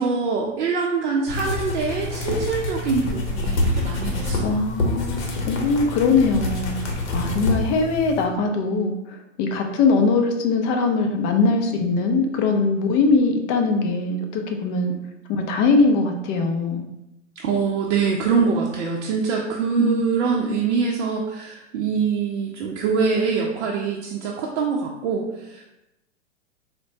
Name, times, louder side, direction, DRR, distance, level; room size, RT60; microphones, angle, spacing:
voice 1, 0.0-4.6 17.4-25.7, right 5 dB, 60° right, -1 dB, 0.6 m, -24 dB
sound 1, 1.3-8.2, left 2 dB, 60° left, 0.9 m, -26 dB
voice 2, 4.4-14.9 15.3-16.8 19.8-20.0, left 4 dB, 30° left, 4 dB, 0.4 m, -21 dB
4.2 x 2.1 x 2.7 m, 0.91 s
hypercardioid pair, 110°, 38 cm